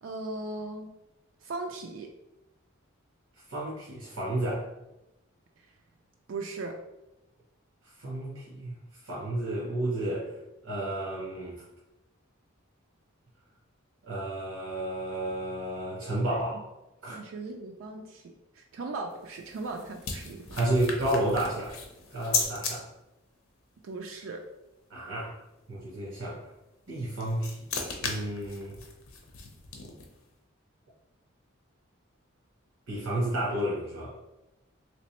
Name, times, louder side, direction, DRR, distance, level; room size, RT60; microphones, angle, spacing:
voice 1, 0.0-0.9 1.4-2.1 6.3-6.8 16.3-16.4 17.1-20.6 23.8-24.4, right 3 dB, 70° right, 3 dB, 0.3 m, -38 dB
voice 2, 3.4-4.7 7.8-8.7 9.0-10.3 10.6-11.6 14.0-16.6 17.0-17.2 20.5-21.8 22.1-22.9 24.9-25.4 25.7-26.5 26.9-27.7 28.0-28.8 32.9-34.2, right 1 dB, 85° right, -6 dB, 0.9 m, -31 dB
sound 1, 19.1-22.7 26.9-30.2, left 4 dB, 90° left, 0.7 m, -36 dB
3.3 x 3.0 x 3.0 m, 0.94 s
head